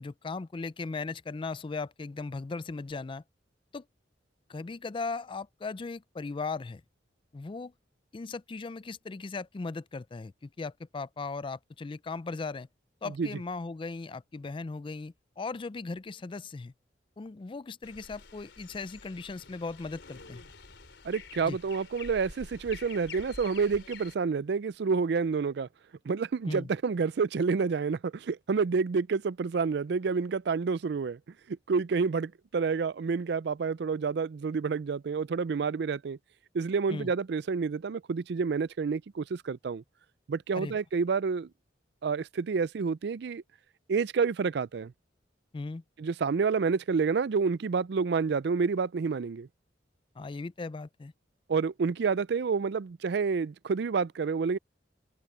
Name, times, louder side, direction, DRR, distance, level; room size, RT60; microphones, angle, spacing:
voice 1, 0.0-3.2 3.7-3.9 4.5-6.8 7.3-7.7 8.1-12.7 13.0-16.7 17.2-20.4 21.4-21.6 26.5-26.7 36.9-37.1 40.6-40.8 45.5-45.8 50.2-51.1, left 3 dB, 30° left, 0.4 m, -38 dB
sound 1, 17.8-24.1, left 4 dB, 85° left, 3.5 m, -48 dB
voice 2, 21.0-25.7 26.1-31.2 31.5-36.2 36.5-39.8 40.3-41.5 42.0-43.4 43.9-44.9 46.0-49.5 51.5-54.6, right 5 dB, 65° right, 0.4 m, -29 dB
open air
head